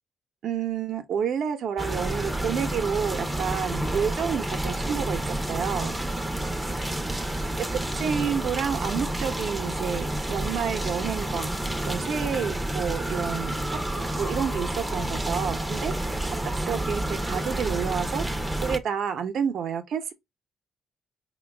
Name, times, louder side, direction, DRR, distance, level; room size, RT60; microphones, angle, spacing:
voice 1, 0.4-6.0 7.7-13.6 14.0-15.9 16.6-20.1, right 7 dB, 65° right, 0.6 m, -29 dB
sound 1, 1.8-18.8, right 1 dB, 10° right, 0.5 m, -29 dB
3.8 x 2.2 x 3.2 m
cardioid pair, 90°, 0 cm